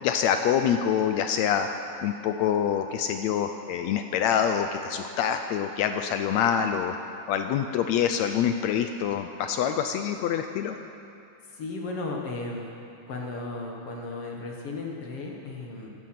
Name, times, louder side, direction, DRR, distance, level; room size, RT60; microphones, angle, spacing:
voice 1, 0.0-1.7 2.0-10.8, left 8 dB, 85° left, 7 dB, 1.5 m, -26 dB
voice 2, 11.5-12.7 13.1-15.9, left 3 dB, 55° left, 0 dB, 2.0 m, -35 dB
17.0 x 12.0 x 5.9 m, 2.7 s
omnidirectional pair, 3.7 m